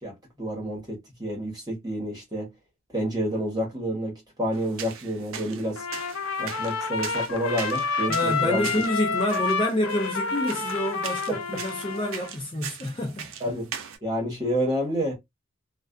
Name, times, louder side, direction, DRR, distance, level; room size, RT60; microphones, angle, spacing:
voice 1, 0.0-2.5 2.9-5.8 6.4-8.7 11.3-11.4 13.4-13.7 14.0-15.1, equal, 20° right, 1.1 m, -29 dB
sound 1, 4.5-14.0, right 8 dB, 75° right, 0.5 m, -41 dB
Trumpet, 5.8-12.3, left 4 dB, 85° left, 0.5 m, -29 dB
voice 2, 8.1-13.3, left 1 dB, 25° left, 0.4 m, -28 dB
2.4 x 2.3 x 2.3 m
head